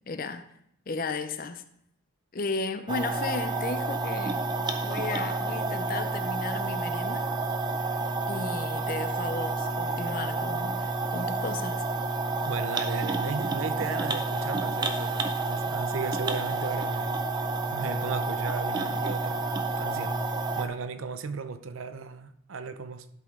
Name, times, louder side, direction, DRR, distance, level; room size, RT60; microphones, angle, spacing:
voice 1, 0.1-0.5 0.9-1.6 2.3-4.5 4.8-7.3 8.3-11.8, left 3 dB, 45° left, 0.5 m, -34 dB
sound 1, 2.9-20.7, right 3 dB, 20° right, 0.4 m, -30 dB
voice 2, 12.5-17.2 17.7-20.2 20.5-23.1, right 5 dB, 80° right, 0.6 m, -36 dB
11.5 x 5.2 x 3.6 m
head